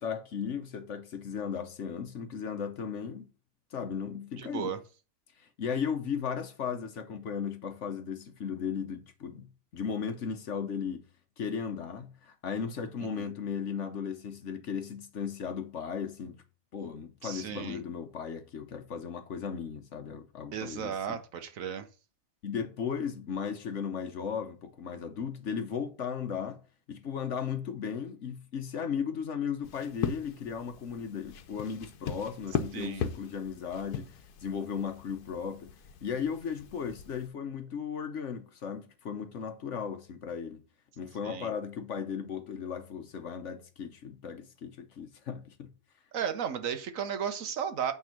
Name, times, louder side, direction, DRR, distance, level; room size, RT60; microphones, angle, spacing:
voice 1, 0.0-3.3 3.7-4.8 5.4-11.0 11.4-16.4 16.7-21.2 22.4-26.6 26.9-35.7 36.0-40.6 41.0-45.7, left 7 dB, 55° left, 1.1 m, -36 dB
voice 2, 4.4-4.8 13.0-13.3 17.2-17.8 20.5-21.9 32.7-33.1 41.2-41.5 46.1-47.9, right 8 dB, 65° right, 1.1 m, -34 dB
sound 1, 29.6-37.3, left 8 dB, 85° left, 1.4 m, -39 dB
9.0 x 3.6 x 5.8 m
omnidirectional pair, 1.6 m